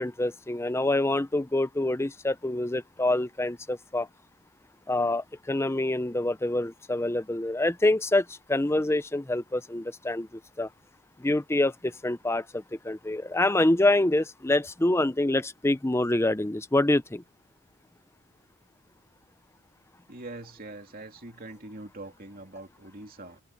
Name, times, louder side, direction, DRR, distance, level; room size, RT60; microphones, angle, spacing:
voice 1, 0.0-4.1 4.9-10.7 11.2-17.2, left 2 dB, 10° left, 0.5 m, -26 dB
voice 2, 20.1-23.4, right 2 dB, 40° right, 2.7 m, -43 dB
head